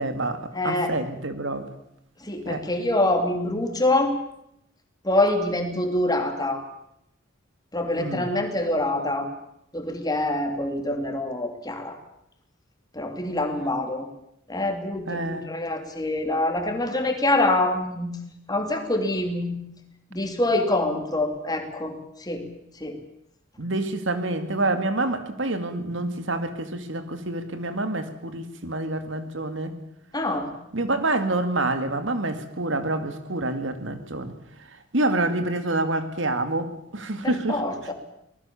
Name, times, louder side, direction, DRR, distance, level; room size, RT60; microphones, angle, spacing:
voice 1, 0.0-1.7 2.4-2.6 8.0-8.3 15.1-15.6 23.6-29.8 30.7-34.3 34.7-37.6, right 2 dB, 70° right, 9 dB, 2.4 m, -27 dB
voice 2, 0.5-0.9 2.2-4.2 5.0-6.6 7.7-9.3 9.7-12.0 12.9-14.1 14.5-18.2 18.5-19.6 20.1-21.9 22.2-22.4 22.8-23.0 30.1-30.5 37.2-37.9, left 1 dB, 20° left, 5 dB, 3.1 m, -25 dB
25.0 x 19.5 x 7.2 m, 0.78 s
head